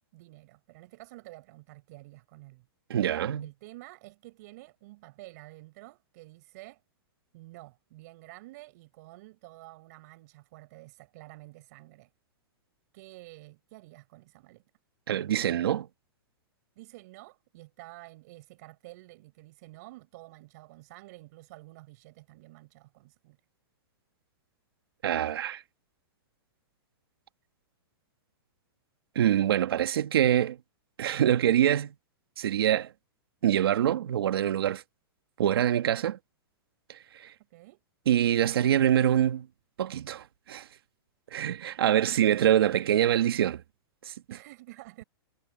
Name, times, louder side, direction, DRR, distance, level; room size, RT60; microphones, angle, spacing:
voice 1, 0.1-2.6 3.4-6.8 7.3-12.1 12.9-14.6 16.8-23.4 37.5-37.8 41.8-42.2 44.3-45.0, right 20 dB, 45° right, 6.3 m, -50 dB
voice 2, 2.9-3.5 15.1-15.9 25.0-25.6 29.2-30.6 31.0-31.9 32.4-32.9 33.4-34.8 35.4-36.2 37.1-37.3 38.1-39.5 39.8-40.7 41.3-43.6 44.1-44.2, right 10 dB, 75° right, 2.0 m, -25 dB
hypercardioid pair, 160°, 13 cm